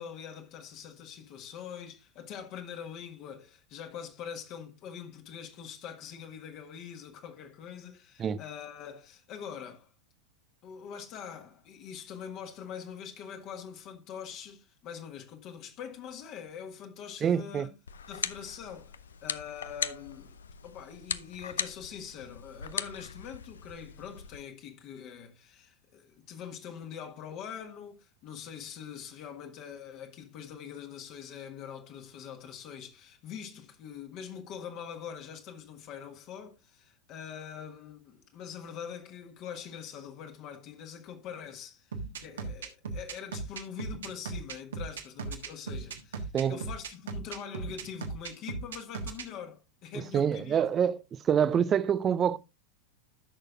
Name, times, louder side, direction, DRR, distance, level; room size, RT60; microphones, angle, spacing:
voice 1, 0.0-9.9 10.6-17.7 18.1-19.0 19.2-20.3 20.6-50.7, left 8 dB, 40° left, 1.5 m, -43 dB
voice 2, 17.2-17.7 46.3-46.6 49.9-51.0 51.2-52.4, right 8 dB, 25° right, 0.5 m, -26 dB
sound 1, 17.9-24.4, left 7 dB, 70° left, 0.5 m, -39 dB
sound 2, 41.9-49.3, right 4 dB, 65° right, 1.4 m, -37 dB
14.0 x 6.5 x 2.5 m
figure-of-eight pair, 90°, 0 cm